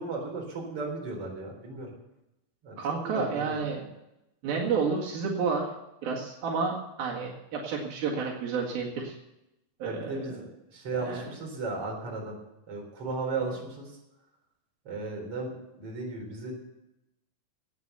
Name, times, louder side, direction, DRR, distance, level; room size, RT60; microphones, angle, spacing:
voice 1, 0.0-1.9 2.6-2.8 3.0-3.6 9.8-10.4 10.7-12.4 12.7-13.9 14.8-16.5, right 3 dB, 40° right, 0 dB, 4.7 m, -35 dB
voice 2, 2.8-3.9 4.4-5.7 6.0-9.2 9.8-10.2 11.0-11.3, right 5 dB, 80° right, -2 dB, 3.8 m, -30 dB
17.5 x 8.2 x 6.9 m, 0.90 s
omnidirectional pair, 4.2 m